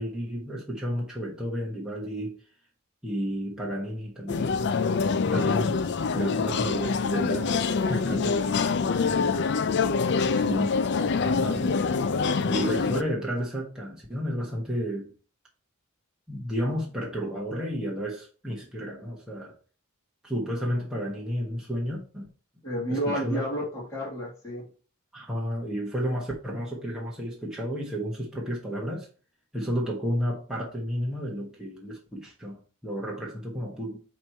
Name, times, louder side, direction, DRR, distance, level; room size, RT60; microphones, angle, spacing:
voice 1, 0.0-2.4 3.0-4.5 5.3-5.8 6.1-8.3 10.3-10.8 11.2-11.8 12.5-15.1 16.3-19.6 20.2-22.3 22.9-23.4 25.1-29.1 29.5-34.0, equal, 5° right, 1.3 m, -32 dB
sound 1, 4.3-13.0, left 5 dB, 50° left, 0.4 m, -25 dB
voice 2, 8.0-9.8 22.6-24.7, equal, 15° left, 2.3 m, -33 dB
8.5 x 3.1 x 4.4 m
head